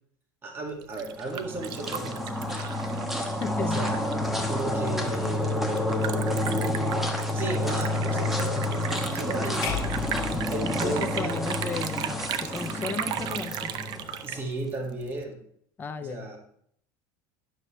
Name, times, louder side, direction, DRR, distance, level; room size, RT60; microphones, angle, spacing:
voice 1, 0.4-2.7 3.1-4.0 4.5-5.7 7.3-9.6 10.5-11.4 14.2-15.4 16.0-16.4, right 2 dB, 20° right, -1 dB, 2.1 m, -35 dB
Liquid, 0.7-15.2, right 10 dB, 45° right, 0.6 m, -37 dB
sound 1, 1.1-14.4, left 1 dB, ahead, 1.1 m, -29 dB
voice 2, 3.4-3.8 10.3-13.7 15.8-16.3, left 4 dB, 20° left, 8 dB, 0.5 m, -35 dB
sound 2, 9.6-11.9, left 7 dB, 45° left, 2.3 m, -35 dB
11.0 x 6.6 x 3.3 m, 0.66 s
supercardioid pair, 140°, 11 cm